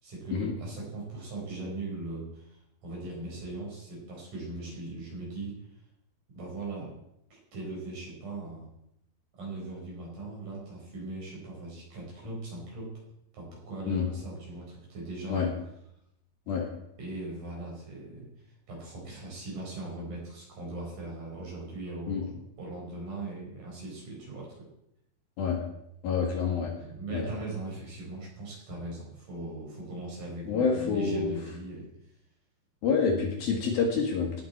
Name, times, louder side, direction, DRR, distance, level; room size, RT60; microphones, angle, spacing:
voice 1, 0.0-5.6 6.3-6.9 7.5-8.7 9.4-12.9 13.3-15.5 17.0-18.3 18.7-24.7 26.8-31.9, right 2 dB, 45° right, -3 dB, 6.2 m, -39 dB
voice 2, 26.0-26.7 27.1-27.2 30.4-31.3 32.8-34.4, left 5 dB, 60° left, 1 dB, 3.1 m, -27 dB
18.0 x 9.4 x 4.4 m, 0.78 s
omnidirectional pair, 5.2 m